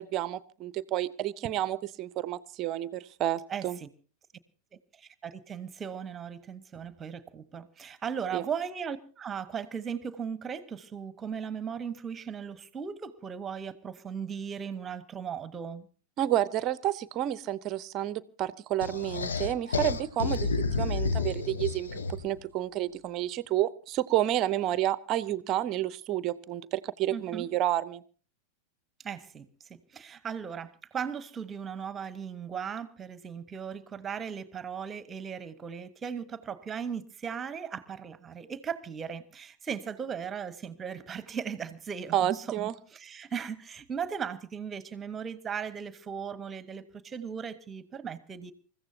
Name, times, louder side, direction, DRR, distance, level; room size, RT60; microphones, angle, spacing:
voice 1, 0.0-3.8 8.3-8.4 16.2-28.0 42.1-42.7, right 13 dB, 35° right, 0.7 m, -30 dB
voice 2, 3.5-3.9 5.0-15.9 27.1-27.5 29.0-29.5 29.9-48.5, right 7 dB, 20° right, 1.2 m, -37 dB
sound 1, 18.8-22.4, left 4 dB, 70° left, 1.0 m, -30 dB
28.0 x 15.0 x 2.8 m
figure-of-eight pair, 90°, 0 cm